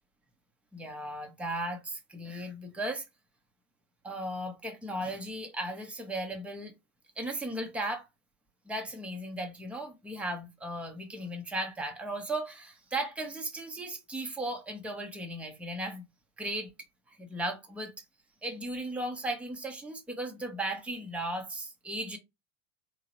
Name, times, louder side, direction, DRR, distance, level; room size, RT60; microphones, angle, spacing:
voice 1, 0.7-3.0 4.0-6.7 7.2-8.1 8.7-16.0 16.4-16.7 17.1-17.9 18.4-22.2, right 1 dB, 5° right, 0.8 m, -36 dB
3.7 x 2.9 x 3.0 m
hypercardioid pair, 85°, 43 cm